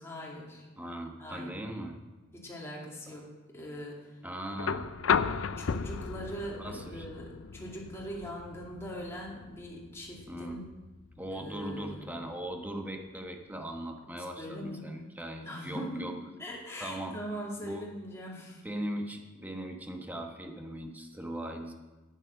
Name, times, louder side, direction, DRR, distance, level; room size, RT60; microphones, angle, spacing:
voice 1, 0.0-0.7 1.2-1.5 2.3-3.2 3.5-4.1 5.6-10.7 11.3-12.1 14.4-14.9 15.4-16.1 16.4-18.6, equal, 15° left, -3 dB, 2.4 m, -41 dB
voice 2, 0.8-2.0 3.1-3.2 4.2-4.9 6.6-7.1 10.3-10.7 11.2-16.1 16.8-17.2 17.6-17.8 18.6-21.7, right 1 dB, 10° right, 3 dB, 1.1 m, -39 dB
sound 1, 4.6-12.6 14.0-14.1, left 6 dB, 75° left, 0.5 m, -35 dB
10.5 x 9.4 x 6.4 m, 1.2 s
head